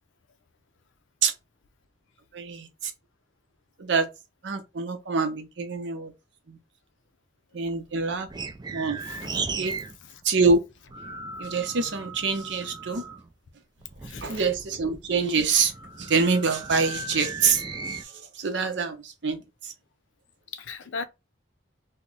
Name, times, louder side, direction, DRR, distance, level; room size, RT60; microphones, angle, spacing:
voice 1, 2.3-2.9 3.8-4.1 4.4-6.1 6.5-6.6 7.5-8.3 8.7-9.0 9.6-9.7 10.2-10.6 11.4-13.0 14.2-15.7 16.0-19.7, right 4 dB, 70° right, 0.7 m, -25 dB
sound 1, 7.6-10.0 10.2-13.3 13.8-18.0, right 4 dB, 20° right, 0.4 m, -37 dB
voice 2, 9.0-9.4 9.6-9.8 10.0-10.2 14.0-14.4 20.5-21.1, left 5 dB, 85° left, 0.5 m, -38 dB
2.8 x 2.1 x 3.8 m
head